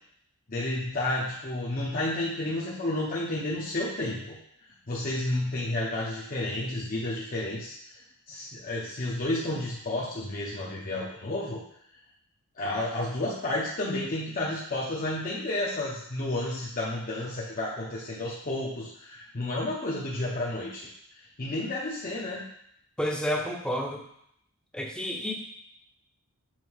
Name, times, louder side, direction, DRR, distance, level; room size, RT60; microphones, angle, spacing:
voice 1, 0.5-4.4 4.9-7.8 8.3-11.6 12.6-20.9 21.2-22.5, left 1 dB, 40° left, -5 dB, 0.8 m, -31 dB
voice 2, 23.0-24.0 24.7-25.3, equal, 5° left, 0 dB, 0.7 m, -30 dB
7.4 x 2.7 x 4.7 m, 0.73 s
head